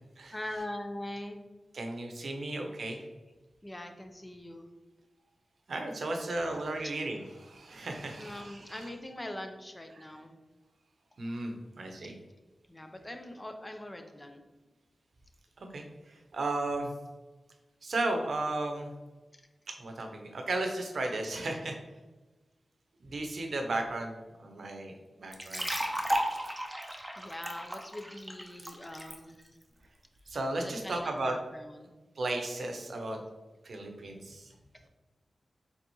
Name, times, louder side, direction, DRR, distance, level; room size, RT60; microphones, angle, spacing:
voice 1, 0.3-1.4 3.6-4.7 8.2-10.4 12.0-12.1 12.7-14.4 26.9-29.5 30.6-31.9 34.3-34.4, left 1 dB, 25° left, 5 dB, 0.7 m, -42 dB
voice 2, 1.7-3.0 5.7-8.9 11.2-12.1 15.7-16.9 17.8-18.9 19.8-21.7 23.0-24.1 24.4-25.7 30.3-31.3 32.2-33.2 33.6-34.5, right 2 dB, 70° right, 3 dB, 0.7 m, -35 dB
sound 1, 25.3-29.2, equal, 10° right, 0.8 m, -34 dB
4.1 x 3.9 x 3.0 m, 1.2 s
cardioid pair, 40°, 0 cm